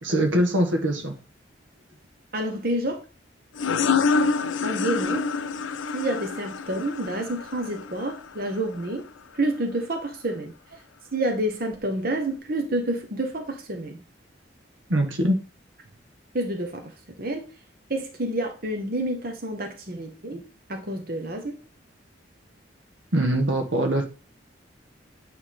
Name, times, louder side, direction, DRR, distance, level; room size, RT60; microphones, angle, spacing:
voice 1, 0.0-1.2 14.9-15.4 23.1-24.1, right 1 dB, 90° right, 4 dB, 1.4 m, -22 dB
voice 2, 2.3-3.0 4.6-5.3 5.9-9.1 9.3-10.5 11.1-14.0 16.3-17.5 17.9-20.4 20.7-21.6, right 1 dB, 50° right, 3 dB, 1.1 m, -29 dB
sound 1, 3.6-8.9, left 4 dB, 85° left, 0.6 m, -27 dB
9.0 x 3.5 x 3.6 m, 0.35 s
head